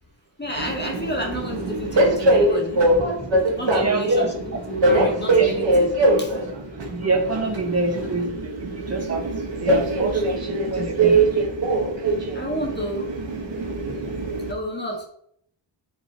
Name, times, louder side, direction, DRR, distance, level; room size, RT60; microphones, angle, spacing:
voice 1, 0.4-5.9 6.2-6.4 12.3-13.1 14.5-15.0, right 1 dB, 20° left, 0 dB, 1.9 m, -30 dB
Train, 0.6-14.5, right 2 dB, 70° right, 1.8 m, -22 dB
voice 2, 3.7-4.3 5.4-5.5 6.9-11.2, right 2 dB, 35° right, 2 dB, 1.8 m, -26 dB
9.6 x 5.4 x 3.1 m, 0.66 s
wide cardioid pair, 125°, 45 cm